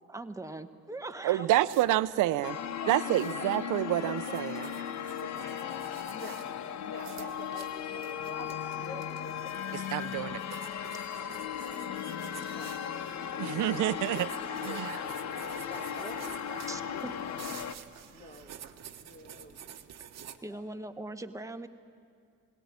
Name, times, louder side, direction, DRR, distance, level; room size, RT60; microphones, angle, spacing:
voice 1, 0.1-1.4 16.7-16.8 20.4-21.7, right 2 dB, 10° right, 7 dB, 1.0 m, -40 dB
voice 2, 1.2-2.6 2.9-4.7 9.7-10.4 13.4-14.3 14.6-14.9, right 14 dB, 85° right, 15 dB, 0.6 m, -28 dB
sound 1, 1.7-20.4, right 9 dB, 60° right, 1.1 m, -51 dB
sound 2, 2.4-17.7, left 8 dB, 65° left, 0.9 m, -37 dB
voice 3, 2.8-3.5 4.0-4.8 5.2-6.5 6.8-9.9 11.1-11.3 11.6-12.1 12.5-12.7 14.5-14.9 15.7-17.1 17.4-17.8 18.1-18.6 19.0-19.6 20.5-20.7, left 1 dB, 30° left, -1 dB, 2.2 m, -47 dB
sound 3, 5.4-7.9 8.3-8.4 8.6-9.7 10.0-10.4, left 3 dB, 80° left, 4.2 m, -61 dB
18.5 x 18.0 x 9.5 m, 2.3 s
cardioid pair, 90°, 30 cm